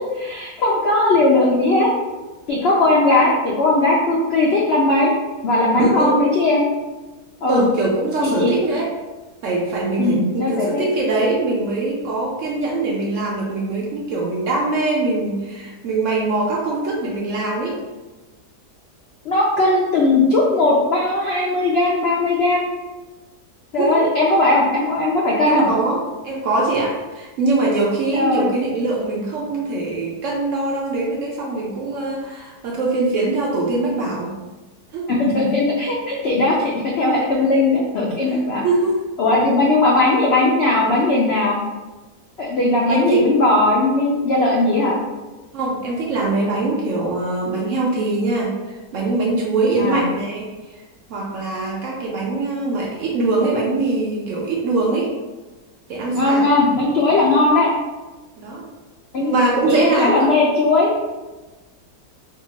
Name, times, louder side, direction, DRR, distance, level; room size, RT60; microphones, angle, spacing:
voice 1, 0.1-1.9 2.5-5.1 5.4-6.6 7.4-7.6 8.2-8.5 10.0-10.8 19.2-22.7 23.7-25.7 28.1-28.5 35.1-38.6 39.2-41.6 42.4-45.0 49.8-50.0 56.1-57.7 59.1-59.3 59.7-60.9, left 2 dB, 90° left, -3 dB, 0.5 m, -18 dB
voice 2, 5.6-6.2 7.4-8.9 9.4-17.8 23.8-24.0 25.4-34.3 34.9-35.1 38.6-39.0 42.6-43.5 45.5-50.5 51.1-55.1 55.9-56.5 58.4-58.7 59.2-60.3, right 2 dB, 70° right, -3 dB, 0.8 m, -22 dB
2.9 x 2.3 x 3.9 m, 1.2 s
omnidirectional pair, 1.7 m